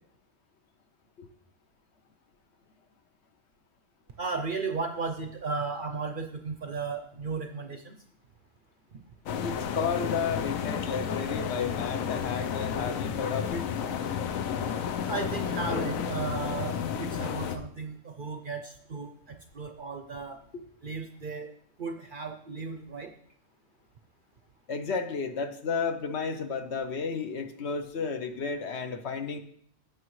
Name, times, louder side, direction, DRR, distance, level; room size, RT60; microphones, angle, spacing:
voice 1, 4.2-8.0 8.9-9.0 15.1-20.4 20.8-21.5 21.8-23.1, right 4 dB, 50° right, 5 dB, 0.6 m, -35 dB
sound 1, 9.3-17.6, left 8 dB, 85° left, 1.1 m, -32 dB
voice 2, 9.4-13.6 20.5-20.6 24.7-29.4, left 5 dB, 60° left, 8 dB, 1.0 m, -32 dB
16.0 x 6.2 x 3.1 m, 0.65 s
omnidirectional pair, 1.4 m